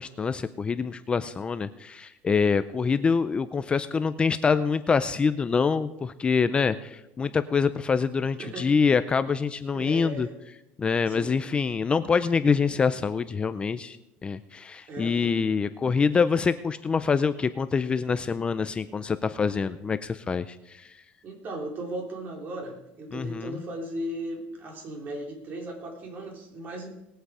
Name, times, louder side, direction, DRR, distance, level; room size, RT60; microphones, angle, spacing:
voice 1, 0.0-10.3 10.8-14.0 14.2-20.9 23.1-23.6, left 5 dB, 20° left, 12 dB, 0.5 m, -25 dB
voice 2, 8.4-8.7 9.7-10.3 11.1-11.4 14.9-15.3 21.2-26.9, right 1 dB, 40° right, 1 dB, 3.5 m, -36 dB
20.0 x 8.0 x 4.9 m, 0.89 s
cardioid pair, 130°, 5 cm